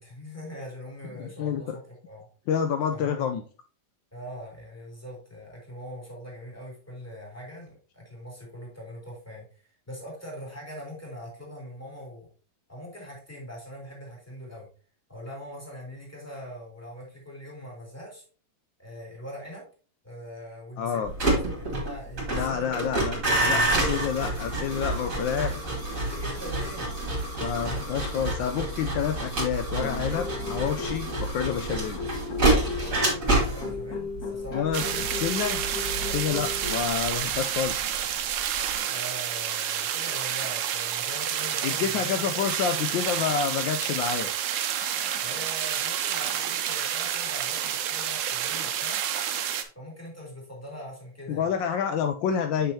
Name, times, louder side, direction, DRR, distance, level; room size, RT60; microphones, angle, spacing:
voice 1, 0.0-2.3 2.9-3.4 4.1-12.3 12.7-14.7 15.1-18.2 18.8-19.6 20.0-21.2 21.6-23.0 26.1-26.9 32.7-35.0 35.8-36.5 38.8-42.3 45.2-49.0 49.7-51.5, equal, 5° left, -3 dB, 2.5 m, -42 dB
voice 2, 1.1-1.8 2.5-3.4 20.8-21.1 22.4-25.8 27.4-32.0 34.5-35.6 36.1-37.9 41.6-44.3 51.3-52.7, left 8 dB, 75° left, 6 dB, 1.3 m, -28 dB
sound 1, 21.0-38.0 38.3-38.8, right 2 dB, 40° right, 2.4 m, -28 dB
sound 2, 29.8-36.9, left 5 dB, 55° left, 1.4 m, -36 dB
sound 3, 34.7-49.6, right 9 dB, 75° right, 1.4 m, -29 dB
6.8 x 5.9 x 2.8 m, 0.38 s
omnidirectional pair, 2.1 m